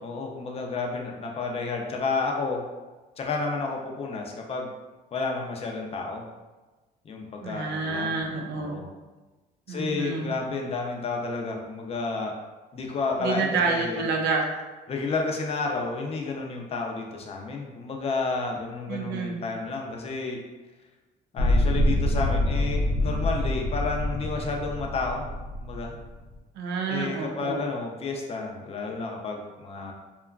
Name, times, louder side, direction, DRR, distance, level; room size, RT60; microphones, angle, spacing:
voice 1, 0.0-2.6 3.2-4.7 5.1-6.2 7.0-8.2 8.5-8.9 9.7-12.3 12.7-14.0 14.9-20.4 21.3-25.3 25.6-25.9 26.9-29.9, left 3 dB, 35° left, 1 dB, 0.5 m, -31 dB
voice 2, 7.4-8.8 9.7-10.3 13.2-14.5 18.9-19.4 26.6-27.7, right 4 dB, 80° right, 1 dB, 0.5 m, -28 dB
sound 1, 21.4-26.3, left 1 dB, 85° left, 0.6 m, -26 dB
2.8 x 2.3 x 2.3 m, 1.2 s
cardioid pair, 110°, 17 cm